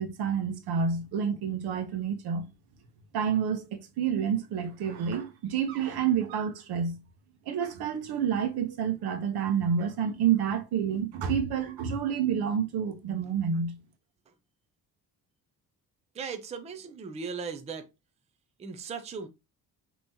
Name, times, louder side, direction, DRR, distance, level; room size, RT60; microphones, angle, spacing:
voice 1, 0.0-2.5 3.1-7.0 7.5-13.8, right 7 dB, 85° right, 1.0 m, -29 dB
voice 2, 16.1-17.9 18.6-19.3, right 5 dB, 20° right, 0.4 m, -37 dB
5.5 x 3.0 x 2.8 m
cardioid pair, 170°, 38 cm